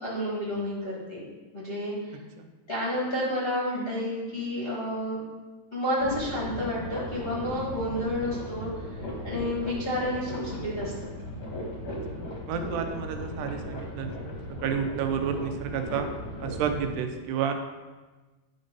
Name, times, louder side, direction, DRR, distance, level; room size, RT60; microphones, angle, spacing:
voice 1, 0.0-1.2 1.5-2.2 2.7-5.2 5.7-8.7 9.2-11.1 12.6-12.7, left 1 dB, 25° left, -7 dB, 1.3 m, -30 dB
sound 1, 6.0-16.9, equal, 45° left, 1.5 m, -37 dB
voice 2, 12.5-14.1 14.6-16.1 16.4-17.5, right 7 dB, 90° right, 6 dB, 2.2 m, -30 dB
10.0 x 3.9 x 5.2 m, 1.2 s
omnidirectional pair, 3.6 m